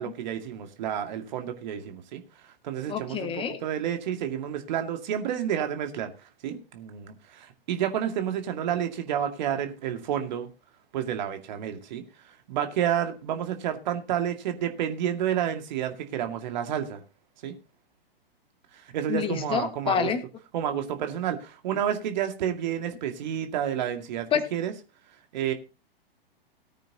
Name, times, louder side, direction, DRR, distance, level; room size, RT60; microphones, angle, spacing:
voice 1, 0.0-6.1 6.4-10.5 10.9-12.0 12.5-17.0 17.4-17.5 18.7-20.1 20.5-24.7 25.3-25.5, right 9 dB, 50° right, 6 dB, 2.2 m, -30 dB
voice 2, 2.9-3.6 19.1-20.2 24.3-24.4, left 7 dB, 20° left, 9 dB, 1.5 m, -27 dB
18.0 x 9.2 x 2.9 m, 0.31 s
figure-of-eight pair, 110°, 29 cm